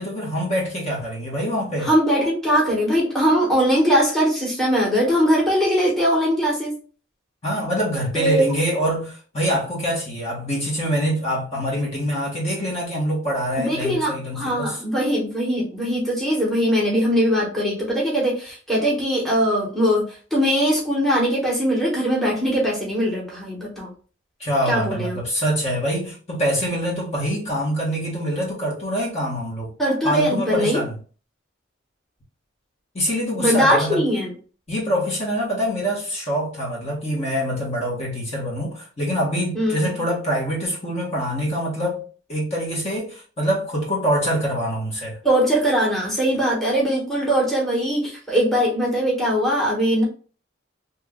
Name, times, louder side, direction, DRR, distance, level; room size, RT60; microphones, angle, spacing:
voice 1, 0.0-1.9 7.4-14.8 24.4-29.7 30.0-31.0 32.9-34.0 34.7-42.0 42.3-45.2, equal, 35° left, 1.2 m, -25 dB
voice 2, 1.8-6.7 8.1-8.4 13.6-20.0 20.3-23.9 24.7-25.2 29.8-30.8 33.4-34.3 39.5-39.9 45.2-50.0, equal, ahead, 1.2 m, -21 dB
3.0 x 2.6 x 3.5 m
head